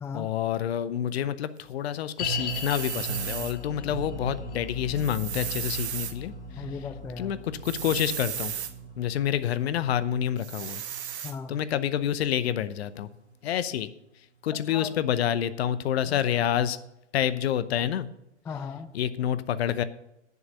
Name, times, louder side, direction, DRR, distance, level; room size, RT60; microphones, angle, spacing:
voice 1, 0.1-6.3 7.2-8.5 9.0-10.8 11.5-13.1 13.4-13.9 14.4-16.8 17.1-18.1 18.9-19.8, left 10 dB, 60° left, 14 dB, 0.9 m, -28 dB
sound 1, 2.2-13.5 13.7-13.8 14.5-14.6, equal, 25° left, 1.9 m, -39 dB
sound 2, 2.5-3.5 5.0-6.1 7.6-8.7 10.4-11.3, right 10 dB, 65° right, 1.1 m, -35 dB
voice 2, 6.6-7.3 11.2-11.6 14.7-14.9 18.5-18.9, left 6 dB, 5° left, 8 dB, 0.5 m, -37 dB
10.5 x 6.8 x 6.7 m, 0.87 s
hypercardioid pair, 115°, 36 cm